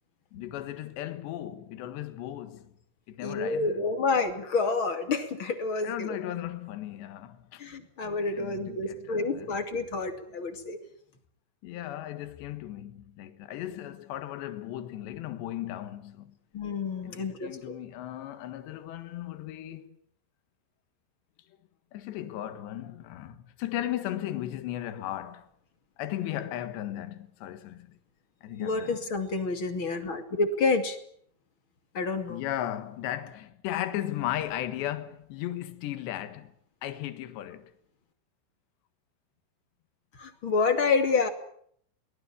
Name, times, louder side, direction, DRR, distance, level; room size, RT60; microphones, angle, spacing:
voice 1, 0.3-2.7 3.1-3.9 5.8-7.8 8.3-9.5 11.6-16.3 17.0-20.0 21.9-25.5 26.0-28.0 28.4-29.0 32.3-36.5 36.8-37.7, left 13 dB, 75° left, 3.8 m, -36 dB
voice 2, 3.2-6.2 7.6-10.8 16.5-17.8 28.6-31.0 31.9-32.4 40.2-41.3, left 4 dB, 35° left, 2.5 m, -28 dB
24.0 x 19.5 x 8.6 m
omnidirectional pair, 5.1 m